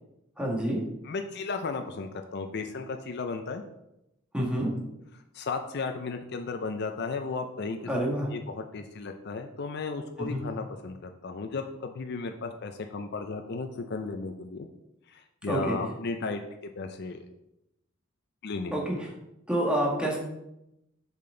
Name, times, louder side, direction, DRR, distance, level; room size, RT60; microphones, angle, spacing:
voice 1, 0.4-0.8 4.3-4.7 7.9-8.3 10.3-10.5 15.5-15.7 18.7-18.9 19.5-20.2, right 1 dB, 5° right, -2 dB, 1.7 m, -27 dB
voice 2, 1.0-3.6 5.3-7.8 8.3-14.7 15.1-16.4 16.8-17.3 18.4-19.0, left 4 dB, 55° left, 5 dB, 0.5 m, -35 dB
7.1 x 5.9 x 3.8 m, 0.86 s
head